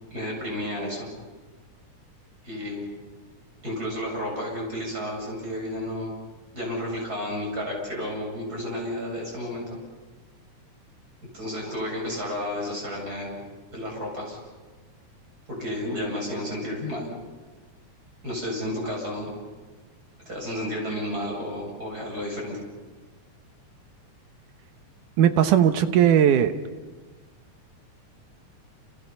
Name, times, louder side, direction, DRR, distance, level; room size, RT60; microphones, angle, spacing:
voice 1, 0.1-1.1 2.4-2.8 3.6-6.1 6.5-9.6 11.3-13.4 13.7-14.4 15.5-17.1 18.2-19.3 20.2-22.6, left 1 dB, 30° right, -1 dB, 8.5 m, -31 dB
voice 2, 25.2-26.5, right 9 dB, 90° right, 9 dB, 2.8 m, -18 dB
29.0 x 28.5 x 5.7 m, 1.4 s
omnidirectional pair, 3.5 m